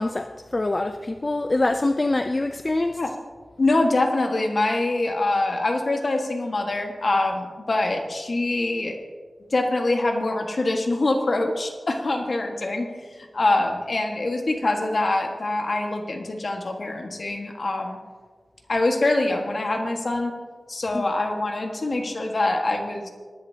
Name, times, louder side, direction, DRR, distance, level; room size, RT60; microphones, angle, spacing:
voice 1, 0.0-3.0 20.9-21.0, left 2 dB, 35° left, 8 dB, 0.4 m, -24 dB
voice 2, 3.6-9.0 9.5-12.9 13.2-18.0 18.7-20.3 20.7-23.1, left 2 dB, 55° left, 3 dB, 1.5 m, -24 dB
19.5 x 10.5 x 2.8 m, 1.5 s
wide cardioid pair, 95°, 0 cm